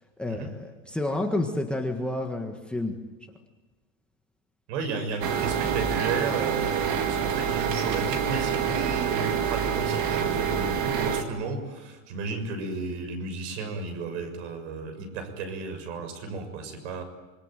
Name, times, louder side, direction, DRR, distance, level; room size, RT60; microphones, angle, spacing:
voice 1, 0.2-3.0, left 2 dB, 5° left, 2 dB, 1.6 m, -29 dB
voice 2, 4.7-17.0, right 4 dB, 60° right, 7 dB, 6.7 m, -33 dB
sound 1, 5.2-11.2, right 8 dB, 35° right, 2.6 m, -27 dB
26.5 x 23.0 x 9.2 m, 1.2 s
supercardioid pair, 160°, 39 cm